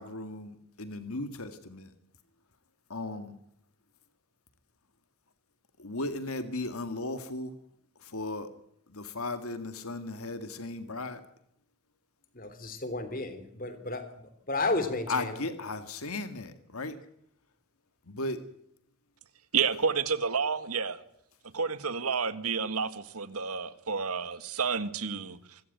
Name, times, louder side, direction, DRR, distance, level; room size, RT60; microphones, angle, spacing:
voice 1, 0.0-1.9 2.9-3.4 5.8-7.6 8.0-8.5 8.9-11.2 15.1-17.0 18.1-18.4, left 2 dB, 80° left, 2.0 m, -36 dB
voice 2, 12.3-14.1 14.5-15.3, left 2 dB, 40° left, 3.2 m, -32 dB
voice 3, 19.5-21.0 21.5-25.6, right 5 dB, 85° right, 1.7 m, -30 dB
26.0 x 14.0 x 9.3 m
head